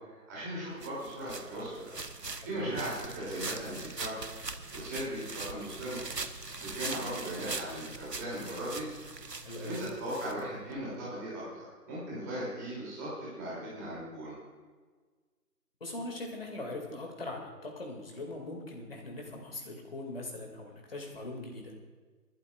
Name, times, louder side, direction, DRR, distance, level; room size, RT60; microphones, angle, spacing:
voice 1, 0.0-1.8 2.4-4.2 4.7-6.0 6.6-8.9 9.6-11.4 11.9-14.3, right 1 dB, 10° right, -8 dB, 2.8 m, -38 dB
sound 1, 0.8-10.8, right 3 dB, 90° right, 1.1 m, -41 dB
voice 2, 2.4-2.8 9.4-9.8 15.8-21.7, left 2 dB, 35° left, 1 dB, 2.3 m, -41 dB
25.0 x 12.0 x 2.4 m, 1.5 s
figure-of-eight pair, 155°, 48 cm